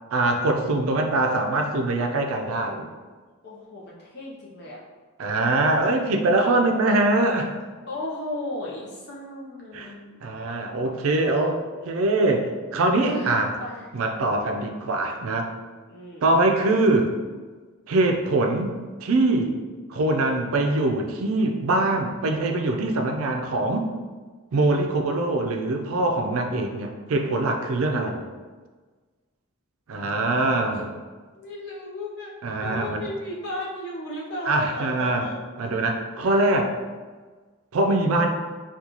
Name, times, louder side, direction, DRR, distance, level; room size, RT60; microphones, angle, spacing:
voice 1, 0.1-2.9 5.2-7.5 9.7-9.9 10.2-13.5 13.9-15.5 16.2-17.1 17.9-19.6 19.9-23.9 24.5-28.2 29.9-30.8 32.4-33.0 34.5-35.3 35.6-36.7 37.7-38.3, right 2 dB, 70° right, 4 dB, 0.4 m, -23 dB
voice 2, 3.4-4.8 6.6-6.9 7.9-10.4 13.0-13.9 15.9-16.3 30.7-30.8 31.3-32.3 32.6-35.4 36.2-36.3, left 1 dB, 45° left, -5 dB, 0.6 m, -35 dB
3.7 x 2.3 x 2.9 m, 1.4 s
head